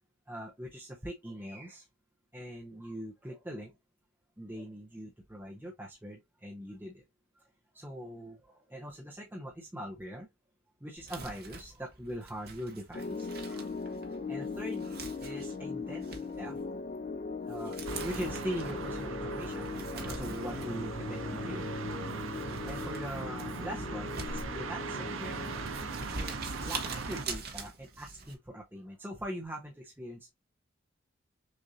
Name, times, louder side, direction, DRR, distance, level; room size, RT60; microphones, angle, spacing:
voice 1, 0.3-1.9 2.3-3.7 4.4-7.0 7.4-7.5 7.7-10.3 10.8-13.7 14.3-14.9 15.2-16.6 17.5-21.7 22.6-25.5 26.2-30.3, equal, 10° right, 0.7 m, -42 dB
Crumpling crinkling, 11.0-28.3, right 4 dB, 50° right, 1.2 m, -45 dB
sound 1, 12.9-27.3, left 4 dB, 40° left, 0.4 m, -40 dB
sound 2, 17.8-27.2, right 4 dB, 80° right, 0.7 m, -39 dB
6.2 x 2.6 x 2.7 m
head